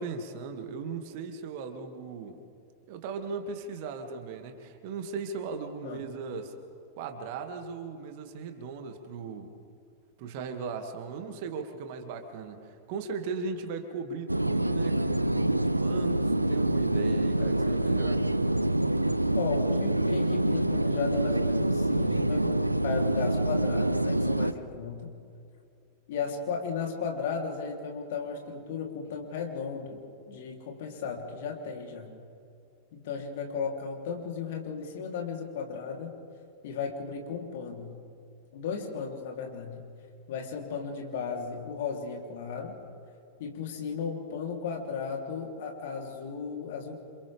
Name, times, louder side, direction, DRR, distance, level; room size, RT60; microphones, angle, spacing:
voice 1, 0.0-2.4 2.9-6.5 7.0-9.6 10.2-18.3, right 5 dB, 50° right, 5 dB, 2.3 m, -38 dB
sound 1, 14.3-24.5, right 1 dB, 85° right, 0.6 m, -26 dB
voice 2, 17.4-18.0 19.3-25.1 26.1-32.1 32.9-36.1 36.6-38.0 38.5-39.8 40.3-42.8 43.4-47.0, left 5 dB, 55° left, 1 dB, 3.4 m, -35 dB
28.5 x 27.5 x 3.6 m, 2.5 s
figure-of-eight pair, 90°, 0 cm